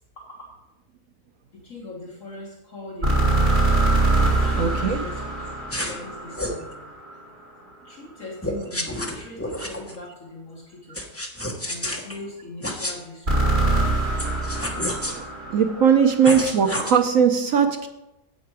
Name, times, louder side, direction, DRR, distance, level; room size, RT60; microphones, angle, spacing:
voice 1, 0.2-0.5 1.7-3.5 4.2-5.1 5.9-6.7 7.9-10.6 10.9-11.0 11.7-13.2, left 2 dB, 55° left, -3 dB, 1.8 m, -39 dB
sound 1, 3.0-7.1 13.3-16.4, right 2 dB, 50° right, 4.6 m, -23 dB
voice 2, 4.6-5.1 15.1-15.2 15.5-17.9, right 7 dB, 65° right, 6 dB, 1.0 m, -19 dB
sound 2, 5.7-6.0 6.3-6.6 8.4-10.0 10.9-12.2 12.6-12.9 14.2-15.2 16.2-16.9, left 1 dB, 10° left, 1.0 m, -29 dB
9.4 x 8.5 x 4.7 m, 0.94 s
omnidirectional pair, 1.7 m